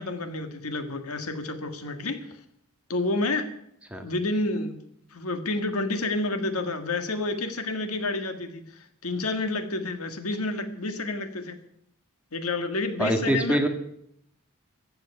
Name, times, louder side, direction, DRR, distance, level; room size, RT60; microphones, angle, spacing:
voice 1, 0.0-2.2 2.9-3.5 4.0-4.8 5.1-11.6 12.3-13.6, left 2 dB, 85° left, 8 dB, 1.7 m, -29 dB
voice 2, 13.0-13.7, right 1 dB, 5° right, 4 dB, 1.7 m, -24 dB
15.0 x 8.0 x 10.0 m, 0.72 s
head